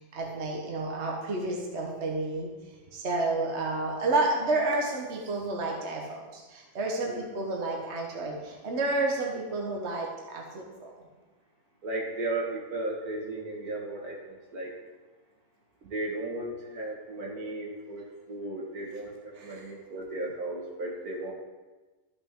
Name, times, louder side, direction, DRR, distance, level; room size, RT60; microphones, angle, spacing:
voice 1, 0.0-2.5 2.9-10.9 19.4-19.6, right 2 dB, 45° right, -1 dB, 1.3 m, -30 dB
voice 2, 11.8-14.7 15.9-18.0 18.3-21.3, right 2 dB, 65° right, -2 dB, 2.2 m, -35 dB
13.5 x 5.9 x 3.7 m, 1.2 s
omnidirectional pair, 1.7 m